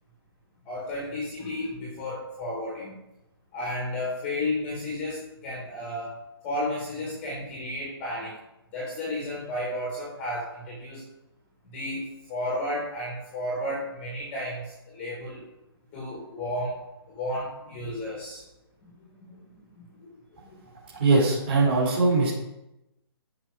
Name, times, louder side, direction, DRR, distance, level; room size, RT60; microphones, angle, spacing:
voice 1, 0.6-3.0 3.5-6.2 6.4-8.4 8.7-11.0 11.6-15.4 15.9-16.8 17.1-18.4 18.8-20.1 20.4-20.6, left 1 dB, 10° left, -4 dB, 1.4 m, -33 dB
voice 2, 21.0-22.3, right 3 dB, 25° right, -9 dB, 3.1 m, -21 dB
13.5 x 5.2 x 4.7 m, 0.91 s
hypercardioid pair, 180°, 13 cm